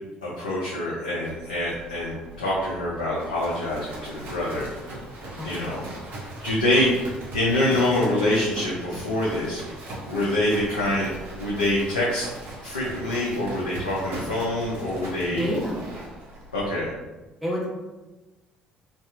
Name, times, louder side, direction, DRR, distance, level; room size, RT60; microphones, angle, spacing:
voice 1, 0.2-4.7 5.4-5.8 6.4-9.6 10.1-11.1 11.4-12.3 12.6-15.5 16.5-16.9, left 1 dB, 80° left, -7 dB, 0.4 m, -25 dB
Livestock farm animals working animals, 1.2-16.7, right 1 dB, 55° right, 0.7 m, -39 dB
voice 2, 5.4-5.7 15.3-15.8 17.4-17.7, equal, ahead, -7 dB, 1.1 m, -29 dB
2.7 x 2.3 x 2.3 m, 1.1 s
figure-of-eight pair, 50°, 4 cm